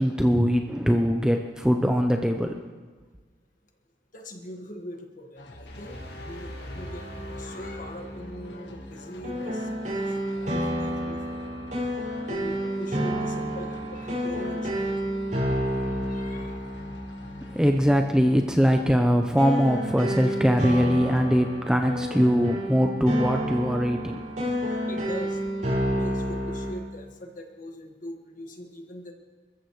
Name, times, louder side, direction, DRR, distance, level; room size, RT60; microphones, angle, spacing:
voice 1, 0.0-2.5 17.5-24.2, equal, 5° right, 3 dB, 0.7 m, -22 dB
voice 2, 4.1-9.9 10.3-12.0 12.3-15.4 16.1-16.7 24.7-25.4 25.7-29.1, equal, 45° left, 2 dB, 1.8 m, -42 dB
sound 1, 5.4-17.9, left 1 dB, 85° left, 1.5 m, -46 dB
sound 2, 5.7-8.9, left 1 dB, 60° left, 2.6 m, -40 dB
sound 3, 6.9-26.7, equal, 45° right, 5.8 m, -30 dB
29.5 x 14.0 x 3.2 m, 1.4 s
head